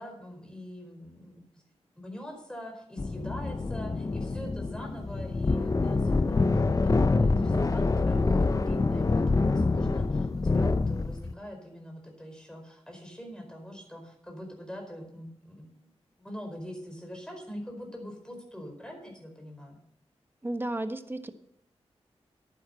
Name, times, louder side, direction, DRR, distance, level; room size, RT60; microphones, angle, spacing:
voice 1, 0.0-1.4 2.0-6.5 6.8-15.9 16.2-19.8, equal, 10° left, 3 dB, 4.7 m, -43 dB
sound 1, 3.0-11.3, left 3 dB, 35° left, 0.7 m, -26 dB
voice 2, 20.4-21.3, right 1 dB, 20° right, 8 dB, 1.3 m, -33 dB
11.0 x 10.0 x 6.5 m, 0.74 s
cardioid pair, 70°, 11 cm